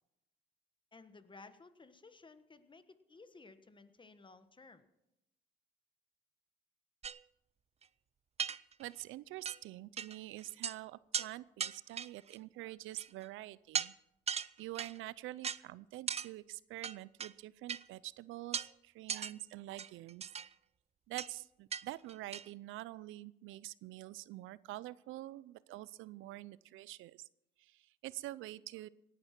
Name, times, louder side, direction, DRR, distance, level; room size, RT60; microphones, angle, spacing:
voice 1, 0.9-4.9, left 3 dB, 25° left, 11 dB, 1.3 m, -57 dB
sound 1, 7.0-7.2 7.8-7.9 8.4-9.0 9.4-9.6 10.0-10.2 10.4-10.8 11.1-11.3 11.6-12.3 13.0-13.3 13.7-13.9 14.3-15.0 15.4-15.6 16.1-16.3 16.8-17.3 17.7-17.8 18.5-18.7 19.1-19.3 19.8-20.5 21.2-21.3 21.7-21.8 22.1-22.5, right 7 dB, 30° right, 0.5 m, -38 dB
voice 2, 8.8-13.9 14.6-20.3 21.1-27.3 27.6-28.9, right 16 dB, 90° right, 20 dB, 0.5 m, -46 dB
17.5 x 11.0 x 5.9 m, 0.86 s
cardioid pair, 90°, 20 cm